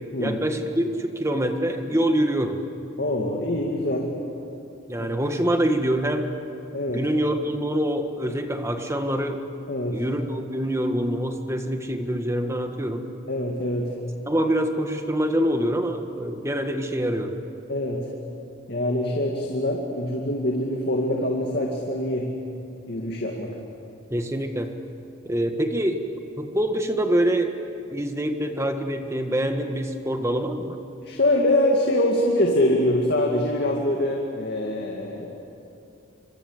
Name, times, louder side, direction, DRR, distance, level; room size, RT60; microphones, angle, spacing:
voice 1, 0.2-2.6 4.9-6.3 6.9-9.4 9.9-13.1 14.3-17.3 24.1-24.7 25.2-26.0 26.4-27.5 27.9-30.8, right 1 dB, 15° right, 6 dB, 1.5 m, -25 dB
voice 2, 3.0-4.1 5.0-5.1 6.7-7.0 9.7-10.0 13.3-13.9 17.7-18.1 18.7-22.3 22.9-23.6 31.0-35.3, left 1 dB, 50° left, 0 dB, 2.3 m, -24 dB
27.0 x 25.0 x 8.1 m, 2.7 s
head